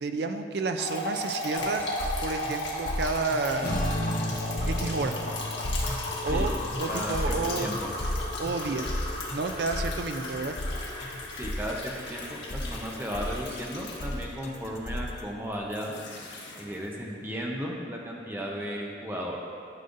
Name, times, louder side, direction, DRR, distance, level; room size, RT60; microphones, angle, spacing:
voice 1, 0.0-1.9 2.2-3.7 4.6-5.2 6.2-7.7 8.4-8.9 9.3-10.5, right 3 dB, 60° right, 7 dB, 0.4 m, -30 dB
sound 1, 0.8-14.6 15.5-16.9, left 1 dB, 85° left, 1.3 m, -36 dB
sound 2, 1.6-15.2, left 1 dB, 40° left, 0.6 m, -34 dB
sound 3, 3.6-10.2, left 1 dB, 65° left, 1.8 m, -37 dB
voice 2, 6.9-7.9 11.3-15.9 16.6-19.4, equal, 10° right, -2 dB, 0.7 m, -35 dB
11.5 x 5.4 x 2.6 m, 2.3 s
head